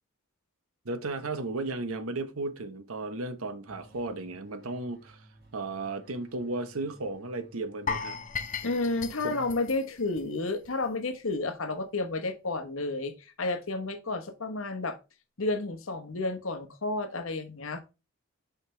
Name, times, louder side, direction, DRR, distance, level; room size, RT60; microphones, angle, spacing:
voice 1, 0.8-5.3 5.5-8.2 9.2-9.5, right 2 dB, 85° right, 0.9 m, -35 dB
sound 1, 3.7-9.8, right 1 dB, 45° right, 1.4 m, -57 dB
sound 2, 7.9-10.9 11.1-11.3 11.8-11.9, left 5 dB, 35° left, 0.7 m, -36 dB
voice 2, 8.6-15.0 15.4-17.8, left 2 dB, 75° left, 1.0 m, -31 dB
5.7 x 5.6 x 3.2 m
head